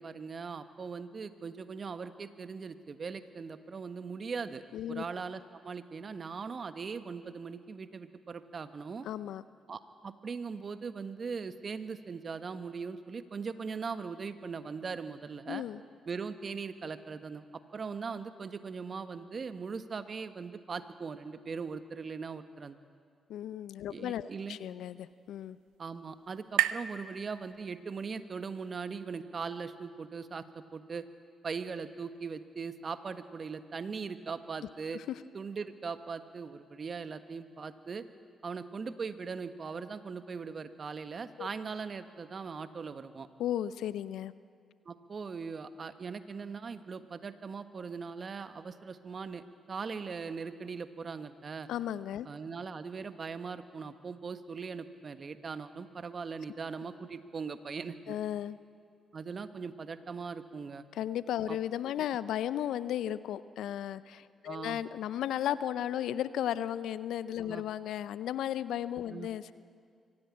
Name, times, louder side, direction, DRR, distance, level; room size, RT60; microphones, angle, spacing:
voice 1, 0.0-4.6 4.9-9.1 9.7-15.6 16.1-17.4 17.7-22.8 23.9-24.6 25.8-31.1 31.4-35.0 35.3-38.0 38.4-43.3 44.8-51.7 52.2-58.2 59.1-60.9 61.5-61.6 64.4-64.8 67.4-67.6 69.1-69.3, right 5 dB, 50° right, 11 dB, 1.3 m, -40 dB
voice 2, 4.7-5.1 9.1-9.4 15.5-15.8 23.3-25.6 34.9-35.2 41.4-41.5 43.4-44.3 51.7-52.3 58.1-58.6 60.9-69.5, left 11 dB, 75° left, 16 dB, 0.6 m, -35 dB
sound 1, 24.2-28.0, right 14 dB, 80° right, 0.5 m, -37 dB
24.0 x 16.5 x 8.6 m, 2.2 s
hypercardioid pair, 45°, 0 cm